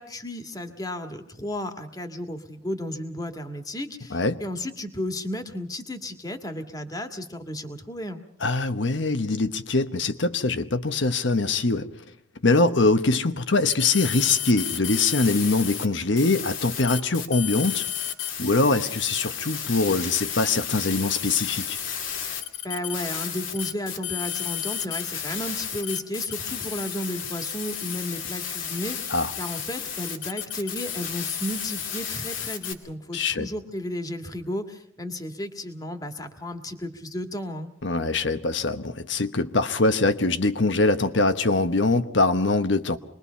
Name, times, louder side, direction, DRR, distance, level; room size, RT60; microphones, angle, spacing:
voice 1, 0.0-8.2 22.6-37.7, left 1 dB, 20° left, 1.8 m, -33 dB
voice 2, 8.4-11.9 12.4-17.8 18.4-21.8 29.1-29.3 33.1-33.5 37.8-43.0, left 3 dB, 70° left, 1.2 m, -23 dB
sound 1, 13.7-15.8 16.2-32.7, left 9 dB, 90° left, 2.6 m, -32 dB
26.5 x 21.5 x 5.7 m
head